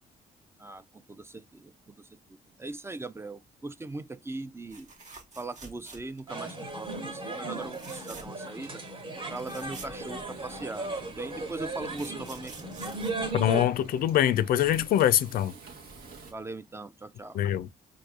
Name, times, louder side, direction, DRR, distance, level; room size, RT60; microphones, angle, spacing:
voice 1, 0.6-4.9 5.4-8.8 9.3-12.5 16.3-17.4, right 2 dB, 15° right, 0.4 m, -40 dB
sound 1, 4.7-6.3 6.7-7.0 7.6-8.5 8.9-9.0 9.2-10.7 11.5-14.0 15.9-16.1 16.4-16.5, right 4 dB, 50° right, 1.2 m, -48 dB
sound 2, 6.3-13.6, right 2 dB, 35° right, 1.3 m, -36 dB
Frying (food), 9.6-16.3, right 4 dB, 75° right, 1.2 m, -49 dB
voice 2, 13.3-15.5 17.3-17.7, left 12 dB, 70° left, 0.4 m, -24 dB
4.6 x 2.6 x 2.4 m
cardioid pair, 80°, 15 cm